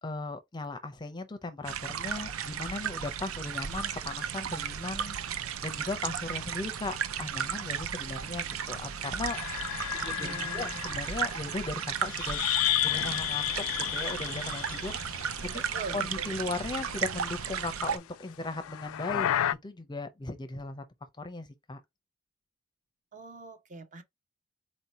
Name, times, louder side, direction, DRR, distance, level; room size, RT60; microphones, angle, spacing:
voice 1, 0.0-5.2 5.6-9.4 9.9-12.4 12.8-13.5 13.8-15.6 15.9-19.3 19.6-20.8 21.2-21.8, left 3 dB, 20° left, 0.5 m, -37 dB
sound 1, 1.6-18.0, right 8 dB, 80° right, 0.5 m, -35 dB
sound 2, 9.2-15.9 16.2-17.6 18.4-19.5, left 13 dB, 75° left, 0.3 m, -33 dB
voice 2, 10.2-10.8 15.4-16.3 23.1-24.0, right 3 dB, 40° right, 0.8 m, -42 dB
4.3 x 2.8 x 4.1 m
head